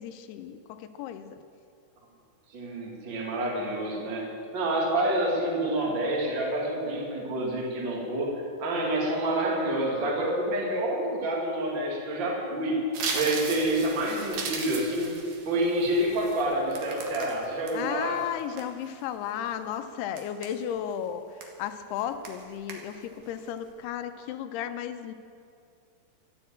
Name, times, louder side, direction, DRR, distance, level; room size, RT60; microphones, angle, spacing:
voice 1, 0.0-1.4 17.7-25.1, left 9 dB, 85° left, 9 dB, 2.6 m, -34 dB
voice 2, 2.5-4.3 4.5-8.3 8.6-12.8 13.1-15.1 15.5-18.2, right 1 dB, 35° right, -2 dB, 2.5 m, -28 dB
sound 1, 12.9-17.7 18.2-19.0 19.5-19.7 20.2-20.9 21.4-21.7 22.0-22.4 22.7-23.1 23.5-23.7, right 4 dB, 60° right, 2.7 m, -37 dB
13.0 x 9.9 x 8.6 m, 2.4 s
omnidirectional pair, 4.8 m